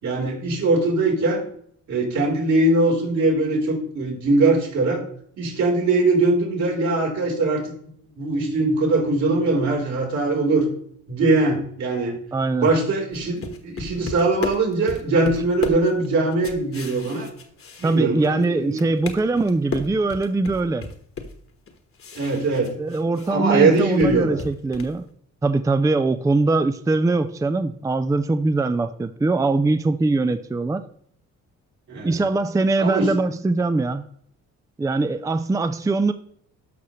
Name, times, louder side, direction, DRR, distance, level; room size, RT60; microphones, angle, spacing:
voice 1, 0.0-1.5 1.9-5.0 5.4-7.7 8.2-10.6 11.1-12.2 12.6-17.3 17.8-18.9 22.1-22.7 23.3-24.4 31.9-32.2 32.8-33.1, right 2 dB, 65° right, -3 dB, 4.0 m, -21 dB
voice 2, 12.3-12.7 17.8-20.9 22.8-25.0 25.4-30.8 32.0-34.1 34.8-36.1, right 3 dB, 10° right, 10 dB, 0.4 m, -22 dB
sound 1, 13.1-18.4 18.7-23.3 23.6-25.0, left 5 dB, 45° left, 1.4 m, -34 dB
12.5 x 5.6 x 3.1 m, 0.64 s
cardioid pair, 90°, 30 cm